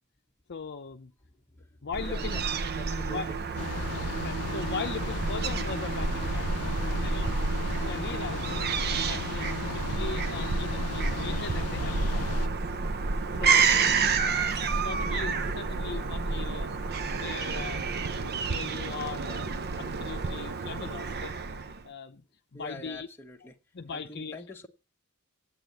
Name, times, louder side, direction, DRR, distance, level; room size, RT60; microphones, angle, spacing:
voice 1, 0.5-1.1 1.8-2.5 3.0-3.3 4.2-6.6 7.0-7.4 7.8-8.7 9.0-12.4 13.4-13.9 14.2-14.3 14.6-16.7 17.2-19.5 19.8-21.4 21.8-22.2 22.5-23.1 23.4-24.4, left 5 dB, 50° left, 0.7 m, -39 dB
voice 2, 1.5-2.4 2.8-3.4 4.1-4.2 21.8-21.9 22.5-23.6 23.9-24.7, left 1 dB, 10° left, 1.1 m, -45 dB
Fowl / Gull seagull, 1.9-21.8, right 4 dB, 45° right, 0.6 m, -29 dB
sound 1, 3.6-12.5, left 6 dB, 85° left, 0.5 m, -36 dB
8.9 x 8.3 x 7.9 m
head